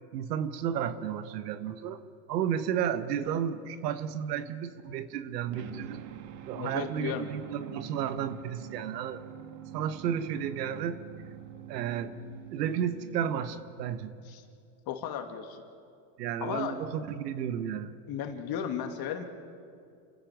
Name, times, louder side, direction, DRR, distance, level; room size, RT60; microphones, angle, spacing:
voice 1, 0.1-2.0 2.3-6.0 6.5-9.2 9.7-11.0 11.7-12.1 12.5-14.1 16.2-17.9, right 9 dB, 80° right, 11 dB, 1.5 m, -32 dB
sound 1, 5.5-13.8, right 10 dB, 65° right, 1.8 m, -45 dB
voice 2, 6.5-7.3 14.2-14.4 14.9-15.6 16.4-16.8 18.1-19.2, left 9 dB, 50° left, 5 dB, 2.5 m, -35 dB
29.0 x 16.0 x 6.3 m, 2.3 s
hypercardioid pair, 100°, 48 cm